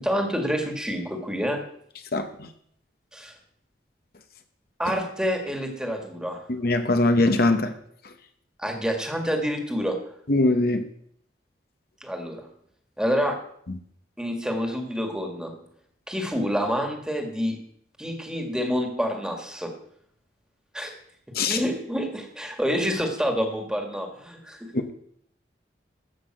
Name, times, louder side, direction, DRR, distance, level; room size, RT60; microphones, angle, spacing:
voice 1, 0.0-1.6 3.1-3.3 4.8-6.4 8.6-10.0 12.0-12.5 13.0-13.4 14.2-15.5 16.1-17.6 18.0-19.7 20.7-20.9 21.4-24.9, equal, 5° right, 3 dB, 1.8 m, -28 dB
voice 2, 6.5-7.7 10.3-10.8 21.3-21.6 24.7-24.9, left 2 dB, 55° left, 7 dB, 1.0 m, -21 dB
13.5 x 5.9 x 7.6 m, 0.67 s
head